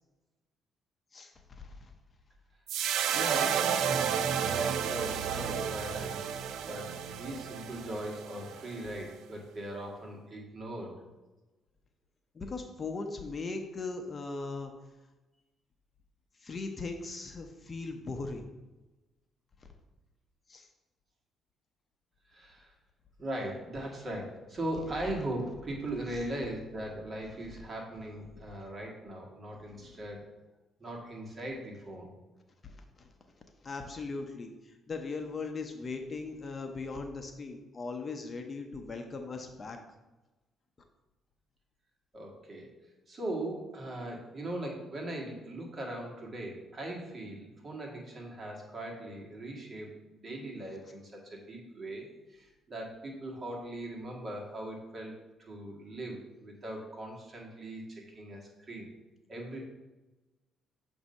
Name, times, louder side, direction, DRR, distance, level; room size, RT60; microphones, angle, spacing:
voice 1, 1.1-1.9 12.3-14.7 16.4-18.4 20.5-20.7 29.7-30.0 32.6-33.1 33.6-39.8, left 3 dB, 35° left, 4 dB, 0.7 m, -39 dB
sound 1, 2.7-9.1, right 8 dB, 80° right, 0.3 m, -32 dB
voice 2, 3.1-6.3 6.6-11.0 22.3-22.7 23.2-30.3 30.8-32.1 42.1-42.8 43.1-55.1 55.5-58.9 59.3-59.6, right 1 dB, 40° right, -1 dB, 1.6 m, -39 dB
7.0 x 2.7 x 5.3 m, 1.1 s
cardioid pair, 85°, 0 cm